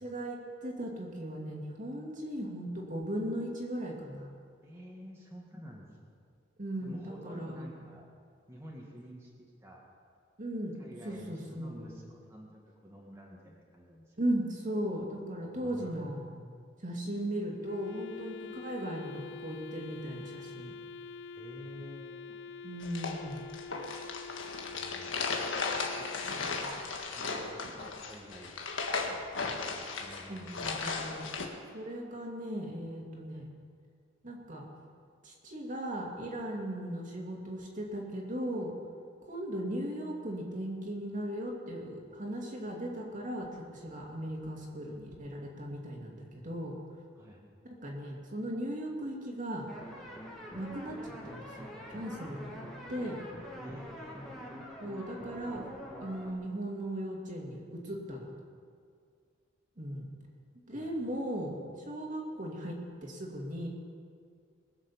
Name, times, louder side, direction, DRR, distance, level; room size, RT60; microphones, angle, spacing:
voice 1, 0.0-4.3 6.6-7.8 10.4-10.7 11.0-11.9 14.2-16.2 16.8-20.7 22.6-23.4 30.3-31.3 31.7-33.5 34.2-34.6 35.2-38.7 39.2-46.8 47.6-49.7 50.5-53.2 54.8-55.7 56.0-58.3 59.8-60.1 60.7-63.7, right 1 dB, 45° right, -1 dB, 2.4 m, -37 dB
voice 2, 4.6-5.9 6.8-8.1 8.5-9.3 9.6-9.8 10.8-12.5 12.8-14.2 15.5-16.5 21.4-22.4 24.7-25.2 25.9-26.5 27.2-28.5 29.0-29.3 30.0-31.0 33.3-33.5 47.2-47.4 53.5-54.1 60.7-61.0, equal, 15° right, -4 dB, 1.9 m, -49 dB
Wind instrument woodwind instrument, 17.6-26.9, left 5 dB, 60° left, 0.4 m, -46 dB
sound 1, 22.8-31.5, left 4 dB, 80° left, 1.6 m, -36 dB
sound 2, 49.7-56.3, equal, ahead, 2.3 m, -45 dB
21.5 x 7.3 x 7.2 m, 2.1 s
head